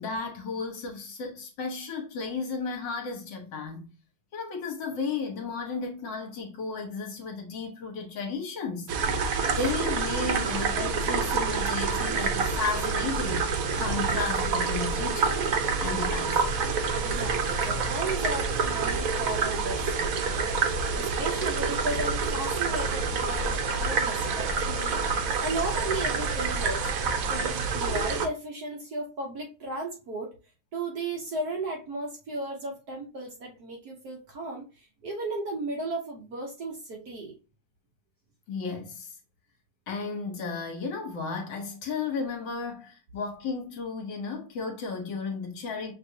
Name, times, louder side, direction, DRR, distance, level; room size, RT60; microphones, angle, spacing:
voice 1, 0.0-3.9 4.3-8.9 9.6-15.5 15.8-16.4 38.5-39.1 39.9-45.9, left 4 dB, 65° left, 1.6 m, -34 dB
sound 1, 8.9-28.3, right 4 dB, 80° right, 0.7 m, -27 dB
voice 2, 17.0-20.6 20.9-26.9 27.3-30.3 30.7-37.4, right 2 dB, 60° right, 1.2 m, -35 dB
6.1 x 2.6 x 2.7 m
omnidirectional pair, 2.3 m